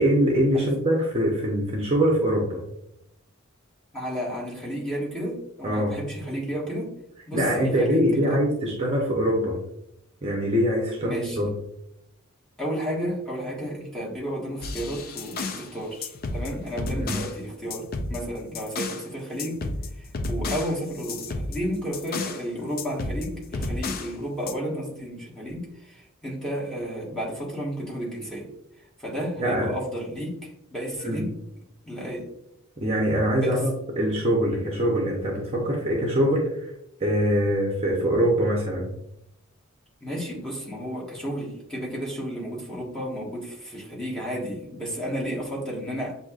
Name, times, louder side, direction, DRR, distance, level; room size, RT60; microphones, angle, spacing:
voice 1, 0.0-2.6 5.6-6.0 7.3-9.6 10.2-11.5 17.0-17.2 29.4-29.7 31.0-31.3 32.8-36.7 37.0-38.9, equal, 30° right, -2 dB, 0.8 m, -23 dB
voice 2, 3.9-6.9 7.3-8.4 11.0-11.4 12.6-19.6 20.0-28.5 29.0-31.4 31.8-32.3 33.4-33.6 40.0-46.2, equal, 5° left, -5 dB, 1.4 m, -32 dB
sound 1, 14.6-15.7 16.0-17.4 17.7-19.1 19.4-22.4 22.8-24.1 24.5-24.6, left 2 dB, 45° left, 0.4 m, -32 dB
7.7 x 2.8 x 2.4 m, 0.80 s
head